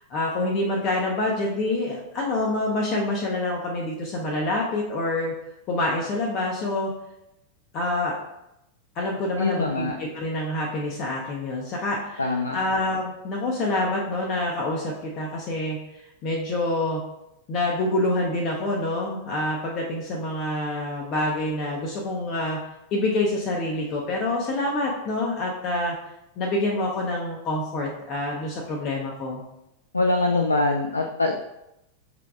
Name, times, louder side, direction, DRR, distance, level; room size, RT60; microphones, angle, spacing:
voice 1, 0.1-5.3 5.7-6.9 7.7-8.1 8.9-15.8 16.2-17.0 17.5-22.6 22.9-26.0 26.4-29.4, left 2 dB, 35° left, -2 dB, 0.7 m, -26 dB
voice 2, 9.4-10.0 12.2-12.6 29.9-31.3, left 2 dB, 80° left, 3 dB, 0.3 m, -23 dB
5.8 x 3.3 x 2.4 m, 0.87 s
figure-of-eight pair, 90°, 0 cm